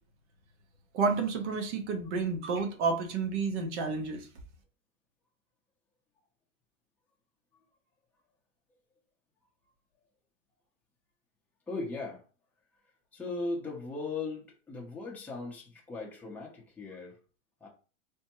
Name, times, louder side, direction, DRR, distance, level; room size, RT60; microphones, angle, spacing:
voice 1, 0.9-4.3, right 4 dB, 60° right, 1.0 m, -30 dB
voice 2, 11.7-12.2 13.1-17.2 17.6-17.7, left 3 dB, 5° left, 0.6 m, -38 dB
3.4 x 2.1 x 2.9 m
hypercardioid pair, 130°, 39 cm